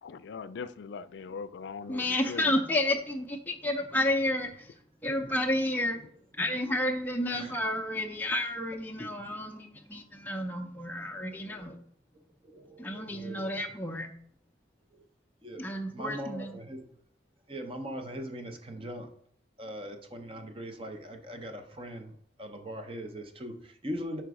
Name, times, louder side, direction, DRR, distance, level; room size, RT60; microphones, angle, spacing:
voice 1, 0.0-2.5, left 5 dB, 80° left, 15 dB, 0.4 m, -41 dB
voice 2, 1.9-4.7 5.0-6.0 6.4-11.8 12.8-14.1 15.6-16.6, left 1 dB, 10° left, 1 dB, 0.4 m, -31 dB
voice 3, 11.3-11.8 12.4-13.6 14.9-15.0 15.4-15.7 15.9-16.9 17.5-19.1 19.6-22.1 22.4-24.2, equal, 30° right, 6 dB, 0.7 m, -41 dB
5.0 x 4.5 x 4.7 m, 0.67 s
head